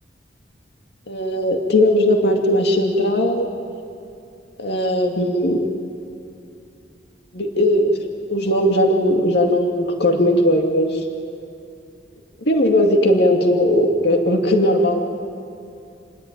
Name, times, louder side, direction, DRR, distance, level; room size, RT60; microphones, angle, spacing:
voice 1, 1.1-3.5 4.6-5.6 7.3-8.0 8.3-11.0 12.5-15.0, left 1 dB, 65° left, 3 dB, 2.5 m, -18 dB
28.5 x 20.0 x 9.2 m, 2.6 s
head